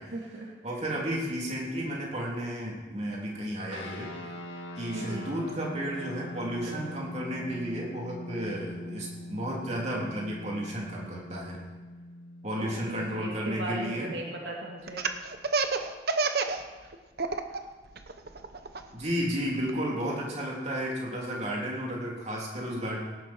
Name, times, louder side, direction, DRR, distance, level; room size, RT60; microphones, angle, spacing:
voice 1, 0.0-0.5 4.9-5.3 12.5-15.1, right 2 dB, 80° right, -2 dB, 2.2 m, -37 dB
voice 2, 0.6-4.1 4.8-11.6 12.4-14.1 18.9-23.0, equal, 35° right, -3 dB, 3.3 m, -33 dB
sound 1, 3.7-14.4, left 1 dB, 85° left, 2.0 m, -42 dB
Laughter, 14.9-16.6 16.9-17.6 18.0-19.7, right 4 dB, 55° right, 0.9 m, -28 dB
18.0 x 10.5 x 4.5 m, 1.3 s
head